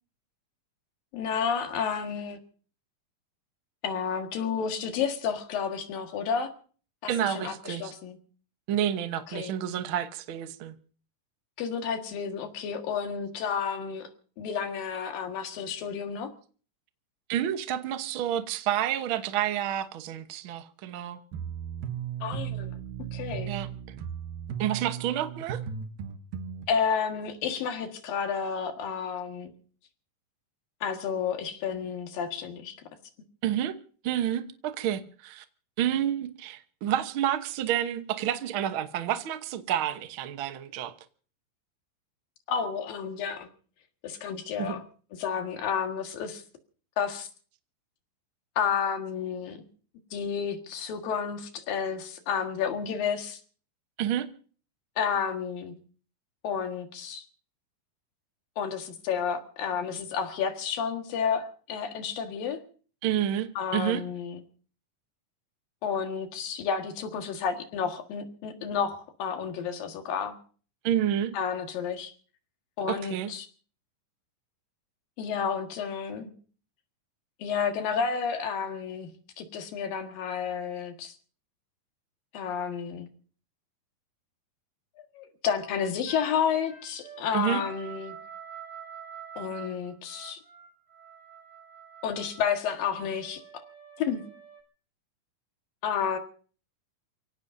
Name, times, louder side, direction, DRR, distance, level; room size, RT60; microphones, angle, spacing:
voice 1, 1.1-2.4 3.8-6.5 7.0-8.2 9.3-9.5 11.6-14.1 14.4-16.3 22.2-22.8 23.1-23.6 26.7-29.5 30.8-32.8 42.5-43.5 44.0-44.8 45.2-46.4 47.0-47.3 48.6-49.6 50.1-53.4 55.0-55.7 56.4-57.2 58.6-62.6 63.6-64.4 65.8-70.4 71.3-72.1 72.8-73.5 75.2-76.3 77.4-79.1 79.4-81.1 82.3-83.1 85.0-88.2 89.4-90.4 92.0-93.6 94.0-94.2 95.8-96.2, left 7 dB, 85° left, 5 dB, 3.5 m, -31 dB
voice 2, 7.1-7.9 8.7-10.8 17.3-21.2 23.5-23.7 24.6-25.6 33.4-33.8 34.0-35.4 35.8-40.9 44.6-44.8 54.0-54.3 63.0-64.0 70.8-71.3 72.9-73.3 87.3-87.6, right 10 dB, 60° right, 8 dB, 1.3 m, -29 dB
sound 1, 21.3-26.6, right 8 dB, 85° right, 3.0 m, -36 dB
sound 2, 86.1-94.6, right 7 dB, 10° right, 2.7 m, -47 dB
29.0 x 17.0 x 2.7 m, 0.43 s
omnidirectional pair, 3.9 m